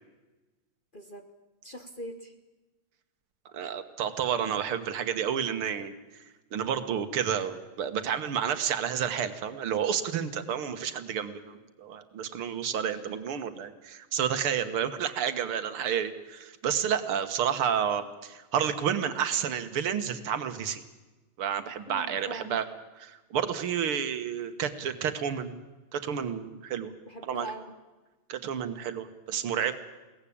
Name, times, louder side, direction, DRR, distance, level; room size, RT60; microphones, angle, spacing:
voice 1, 0.9-1.3 1.6-2.3 14.8-15.0 21.9-22.6 27.1-27.7, equal, 30° left, 7 dB, 1.1 m, -42 dB
voice 2, 3.5-6.2 6.5-20.8 21.4-22.7 23.0-25.5 25.9-26.9 27.2-27.5 28.3-29.7, right 8 dB, 85° right, 10 dB, 2.3 m, -30 dB
22.0 x 17.5 x 8.6 m, 1.2 s
omnidirectional pair, 2.3 m